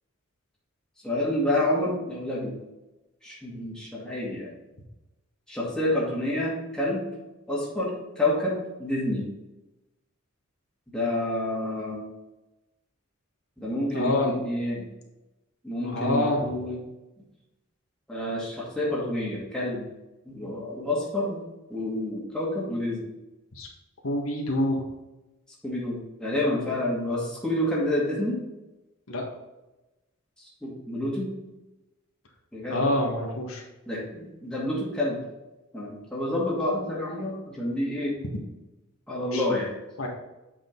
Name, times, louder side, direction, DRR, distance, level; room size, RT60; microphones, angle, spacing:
voice 1, 1.0-2.6 3.2-4.5 5.5-7.0 7.5-9.3 10.9-12.0 13.6-14.9 15.6-16.8 18.1-19.9 20.3-21.4 21.7-23.1 25.6-28.4 30.4-31.3 32.5-32.9 33.9-35.2 35.7-38.2 39.1-39.7, left 1 dB, 5° left, -6 dB, 2.2 m, -28 dB
voice 2, 13.9-14.3 15.8-16.5 23.5-23.7 24.0-24.8 29.1-29.2 32.7-33.6 39.3-39.4 40.0-40.1, left 1 dB, 90° left, 0 dB, 1.6 m, -26 dB
8.0 x 5.0 x 3.9 m, 1.0 s
head